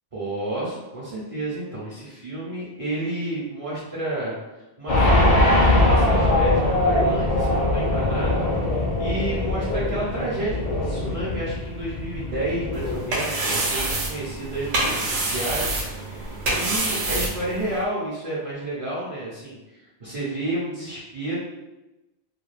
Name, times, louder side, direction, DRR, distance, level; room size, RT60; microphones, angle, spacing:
voice 1, 0.1-4.4 4.8-21.4, right 1 dB, 40° right, -8 dB, 0.5 m, -31 dB
sound 1, 4.9-13.0, left 1 dB, 50° left, 0.5 m, -21 dB
sound 2, 12.7-17.8, right 2 dB, 75° right, 1.0 m, -27 dB
2.5 x 2.2 x 3.2 m, 1.0 s
omnidirectional pair, 1.2 m